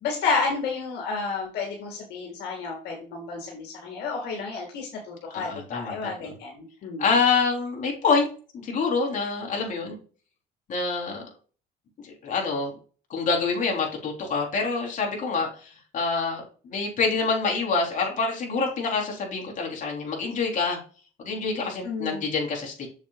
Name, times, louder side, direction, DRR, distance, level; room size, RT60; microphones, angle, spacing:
voice 1, 0.0-7.0 21.8-22.3, left 4 dB, 80° left, 0 dB, 2.1 m, -31 dB
voice 2, 5.3-6.3 7.0-8.3 8.5-10.0 10.7-11.3 12.0-12.7 13.1-20.8 21.2-22.9, left 4 dB, 50° left, 0 dB, 3.6 m, -26 dB
7.3 x 7.0 x 2.4 m, 0.38 s
cardioid pair, 110°, 17 cm